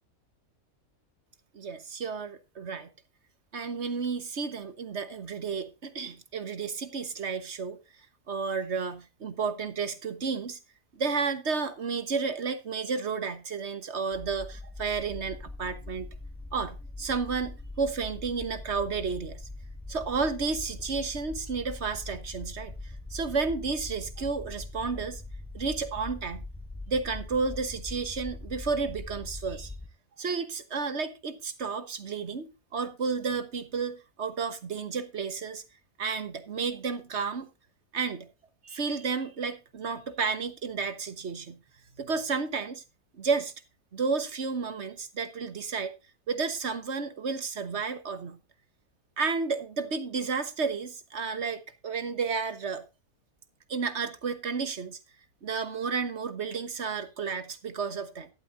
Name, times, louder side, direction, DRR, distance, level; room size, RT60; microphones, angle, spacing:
voice 1, 1.5-2.9 3.5-7.8 8.3-10.6 10.9-16.1 16.5-19.4 19.9-25.2 25.5-26.4 26.9-29.7 30.2-35.6 36.0-37.5 37.9-38.3 38.6-41.6 42.0-42.8 43.1-43.5 43.9-45.9 46.3-48.4 49.2-52.8 53.7-55.0 55.4-58.3, right 5 dB, 50° right, 1.4 m, -32 dB
sound 1, 14.1-29.9, left 2 dB, 5° left, 1.4 m, -42 dB
12.0 x 11.5 x 2.6 m
omnidirectional pair, 1.5 m